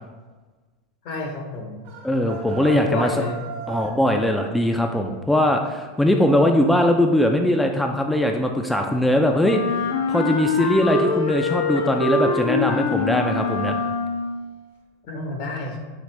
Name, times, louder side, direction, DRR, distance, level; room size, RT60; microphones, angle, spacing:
voice 1, 1.0-1.8 2.6-3.4 15.1-15.8, left 2 dB, 60° left, 2 dB, 0.9 m, -29 dB
sound 1, 1.8-4.0, right 5 dB, 70° right, 1.0 m, -36 dB
voice 2, 2.0-3.1 3.7-9.6 10.1-13.8, left 1 dB, 5° left, 3 dB, 0.3 m, -20 dB
Wind instrument woodwind instrument, 9.4-14.4, left 3 dB, 75° left, 0.5 m, -24 dB
5.0 x 2.5 x 3.2 m, 1.3 s
hypercardioid pair, 100°, 0 cm